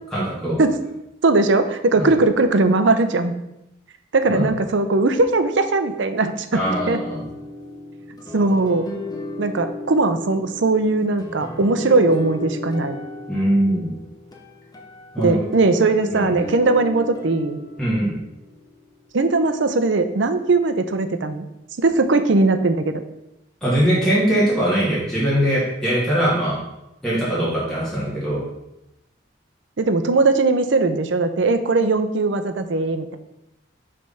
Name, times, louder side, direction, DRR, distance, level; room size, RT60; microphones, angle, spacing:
voice 1, 0.1-0.6 1.9-2.1 4.3-4.5 6.5-7.2 13.3-13.9 15.1-15.4 16.1-16.4 17.8-18.1 23.6-26.6 27.0-28.4, right 1 dB, 5° left, -8 dB, 1.7 m, -21 dB
voice 2, 1.2-3.3 4.1-6.6 6.9-7.0 8.3-8.9 9.4-13.0 15.2-17.6 19.1-21.4 21.8-23.0 29.8-33.2, right 3 dB, 60° right, 9 dB, 0.6 m, -19 dB
sound 1, 6.6-19.1, left 1 dB, 20° left, 0.7 m, -35 dB
6.2 x 3.4 x 5.5 m, 0.87 s
head